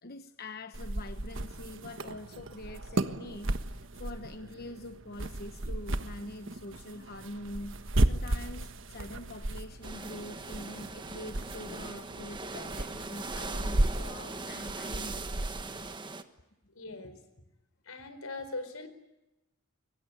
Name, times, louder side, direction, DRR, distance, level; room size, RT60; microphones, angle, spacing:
voice 1, 0.0-15.4, left 1 dB, 45° left, 8 dB, 1.1 m, -45 dB
sound 1, 0.7-15.9, right 1 dB, 60° right, 1.4 m, -34 dB
sound 2, 9.8-16.2, right 3 dB, 20° right, 1.4 m, -40 dB
voice 2, 16.7-17.2 17.8-18.9, left 2 dB, 80° left, 11 dB, 4.6 m, -40 dB
25.5 x 23.5 x 9.9 m, 0.95 s
head